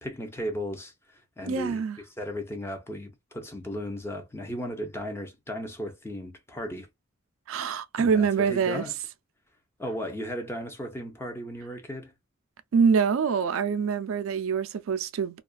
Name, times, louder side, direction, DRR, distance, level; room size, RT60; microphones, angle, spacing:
voice 1, 0.0-6.9 8.0-8.9 9.8-12.1, equal, 10° left, 0.6 m, -36 dB
voice 2, 1.5-2.0 7.5-8.8 12.7-15.4, right 6 dB, 80° right, 0.4 m, -25 dB
2.4 x 2.2 x 2.3 m
head